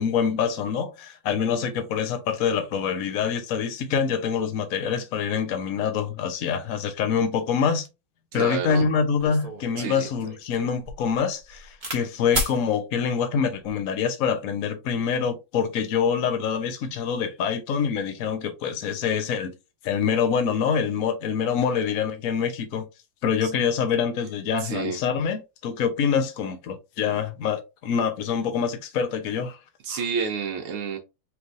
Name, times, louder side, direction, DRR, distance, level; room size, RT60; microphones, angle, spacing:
voice 1, 0.0-7.9 8.3-19.5 19.8-22.8 23.2-29.6 29.9-30.0, left 7 dB, 55° left, 1.0 m, -25 dB
voice 2, 8.3-8.8 9.8-10.1 23.4-23.5 24.6-25.0 29.8-31.0, right 6 dB, 85° right, 1.7 m, -29 dB
sound 1, 8.7-8.8 9.2-12.0 12.3-12.6 13.4-13.8, right 1 dB, 30° right, 0.9 m, -33 dB
4.6 x 3.4 x 2.6 m
omnidirectional pair, 2.3 m